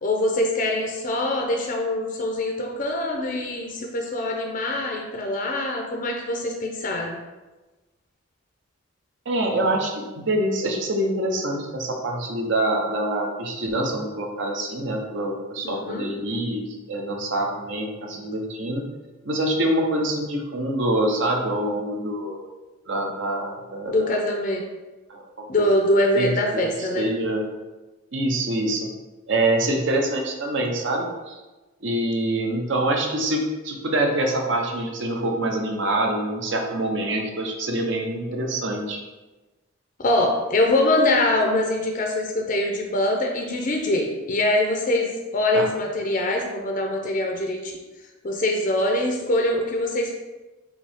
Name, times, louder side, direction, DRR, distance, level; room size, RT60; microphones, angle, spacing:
voice 1, 0.0-7.2 15.6-16.1 23.9-24.6 25.5-27.1 40.0-47.8 48.2-50.1, left 1 dB, 40° left, 2 dB, 0.5 m, -23 dB
voice 2, 9.3-18.9 19.2-22.4 22.9-24.2 25.1-25.2 26.1-27.4 28.1-28.9 29.3-31.4 31.8-39.0 45.5-45.7, right 1 dB, 60° right, 2 dB, 0.7 m, -25 dB
5.4 x 2.8 x 3.5 m, 1.2 s
head